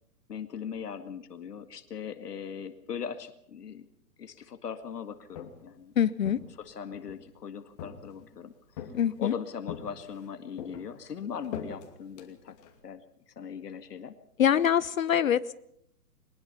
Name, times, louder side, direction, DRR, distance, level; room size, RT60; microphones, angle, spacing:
voice 1, 0.3-3.9 4.2-5.9 6.6-8.9 9.2-12.6 12.8-13.0 13.4-14.2, left 7 dB, 80° left, 9 dB, 2.1 m, -39 dB
Walk footsteps, 5.1-5.8 6.2-7.2 7.8-8.4 8.8-9.3 9.7-10.3 10.6-12.8, left 8 dB, 25° left, 2.5 m, -42 dB
voice 2, 6.0-6.4 8.9-9.3 14.4-15.5, left 9 dB, 60° left, 17 dB, 0.7 m, -24 dB
22.5 x 20.5 x 5.7 m, 0.75 s
hypercardioid pair, 165°, 47 cm